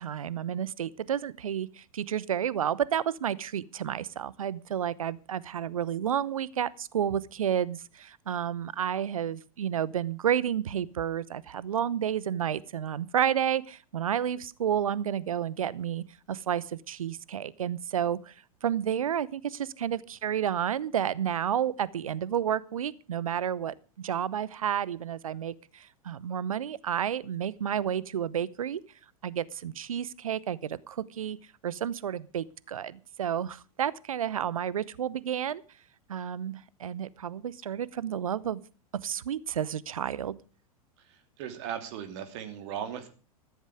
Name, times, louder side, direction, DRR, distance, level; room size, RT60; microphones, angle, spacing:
voice 1, 0.0-18.3 18.6-28.8 29.2-31.4 31.6-35.6 36.1-38.6 39.0-40.4, right 9 dB, 65° right, 22 dB, 0.9 m, -31 dB
voice 2, 41.4-43.1, right 9 dB, 50° right, 8 dB, 3.0 m, -37 dB
14.5 x 14.0 x 4.8 m, 0.34 s
figure-of-eight pair, 90°, 19 cm